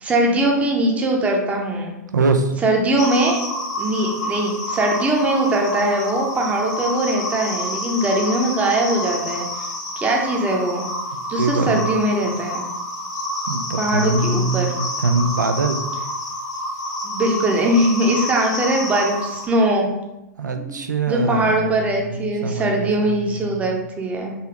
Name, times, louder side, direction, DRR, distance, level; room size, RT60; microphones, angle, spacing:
voice 1, 0.0-1.9 2.6-3.5 3.8-9.7 10.0-10.8 11.3-12.6 13.8-14.7 17.0-19.9 20.5-20.8 21.1-24.3, right 1 dB, 15° right, 0 dB, 0.7 m, -21 dB
voice 2, 2.1-2.5 11.4-11.9 13.5-15.8 20.4-21.6 22.1-23.1 23.4-23.6, right 3 dB, 80° right, 6 dB, 0.4 m, -22 dB
sound 1, 3.0-19.5, left 1 dB, 70° left, 1.2 m, -28 dB
3.9 x 2.9 x 2.9 m, 0.93 s
figure-of-eight pair, 110°, 10 cm